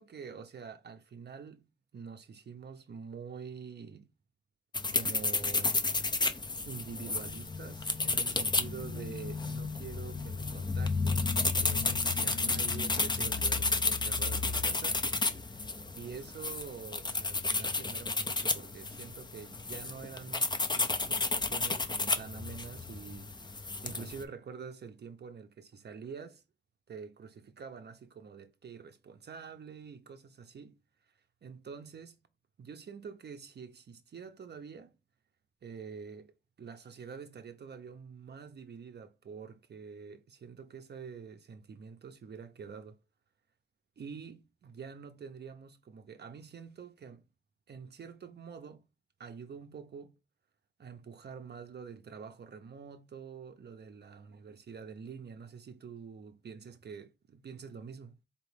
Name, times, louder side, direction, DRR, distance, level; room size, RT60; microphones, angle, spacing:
voice 1, 0.0-4.1 4.9-5.8 6.6-15.1 15.4-15.6 15.9-26.4 26.9-30.8 31.4-32.2 32.6-34.9 35.6-43.0 44.0-47.3 47.7-48.9 49.2-50.2 50.8-58.2, right 6 dB, 60° right, 0.5 m, -46 dB
sound 1, 4.7-24.2, left 3 dB, 25° left, 0.4 m, -32 dB
4.3 x 2.9 x 3.3 m
wide cardioid pair, 140°, 19 cm